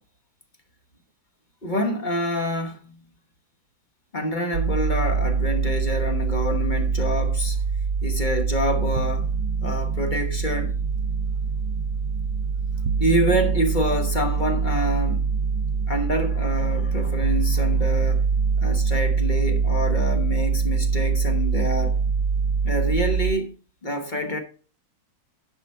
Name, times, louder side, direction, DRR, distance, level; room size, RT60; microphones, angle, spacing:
voice 1, 1.6-3.0 4.1-7.6 8.0-9.3 9.6-10.8 13.0-15.3 15.9-18.3 18.6-22.0 22.6-23.5 23.8-24.4, equal, 30° left, 1.1 m, -27 dB
sound 1, 4.5-23.3, right 5 dB, 75° right, 1.1 m, -24 dB
10.5 x 5.9 x 4.3 m
omnidirectional pair, 2.0 m